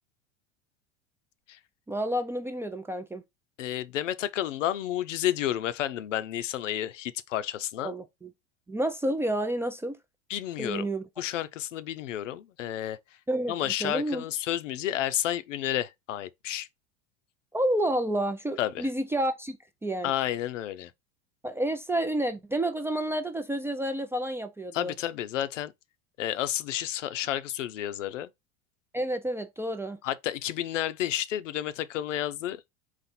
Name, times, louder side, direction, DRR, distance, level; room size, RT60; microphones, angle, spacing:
voice 1, 1.9-3.2 7.8-8.3 8.7-10.0 10.6-11.0 13.3-13.5 13.8-14.2 17.5-20.1 21.4-24.9 28.9-30.0, right 1 dB, 5° right, 0.3 m, -30 dB
voice 2, 3.6-7.9 10.3-10.9 11.2-13.0 13.5-16.7 18.6-18.9 20.0-20.9 24.7-25.7 26.2-28.3 30.0-32.6, left 12 dB, 85° left, 0.6 m, -31 dB
4.1 x 2.5 x 4.2 m
hypercardioid pair, 90°, 36 cm